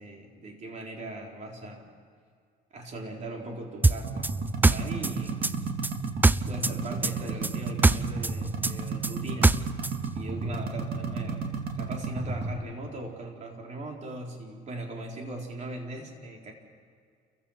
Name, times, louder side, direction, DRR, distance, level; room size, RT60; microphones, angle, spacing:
voice 1, 0.0-1.9 2.7-4.3 4.7-5.4 6.4-9.7 10.1-11.4 11.8-16.5, right 2 dB, 45° right, 1 dB, 4.2 m, -39 dB
sound 1, 3.8-6.8 7.0-9.9, right 2 dB, 10° right, 0.4 m, -22 dB
sound 2, 4.0-12.5, right 4 dB, 65° right, 2.6 m, -33 dB
29.5 x 15.5 x 5.8 m, 2.2 s
cardioid pair, 110°, 17 cm